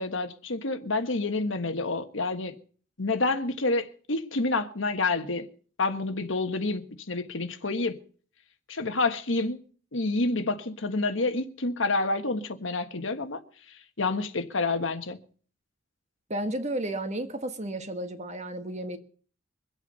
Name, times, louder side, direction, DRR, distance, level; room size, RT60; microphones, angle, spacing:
voice 1, 0.0-2.5 3.0-5.5 5.8-8.0 8.7-9.6 9.9-13.4 14.0-15.2, left 3 dB, 75° left, 1.5 m, -28 dB
voice 2, 16.3-19.0, right 1 dB, 35° right, 1.6 m, -32 dB
23.5 x 8.3 x 5.6 m
head